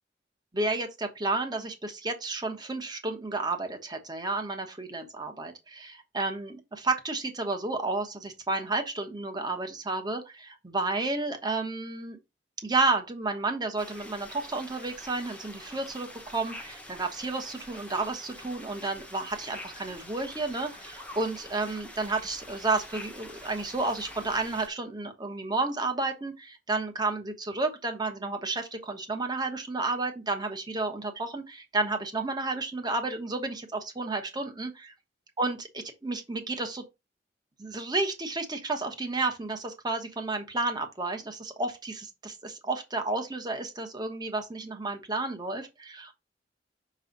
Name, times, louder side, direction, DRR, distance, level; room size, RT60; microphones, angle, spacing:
voice 1, 0.5-12.2 12.6-34.9 35.4-36.8 37.6-46.1, right 3 dB, 25° right, 1.1 m, -31 dB
sound 1, 13.8-24.7, left 1 dB, 5° left, 0.9 m, -46 dB
6.2 x 3.2 x 5.2 m
head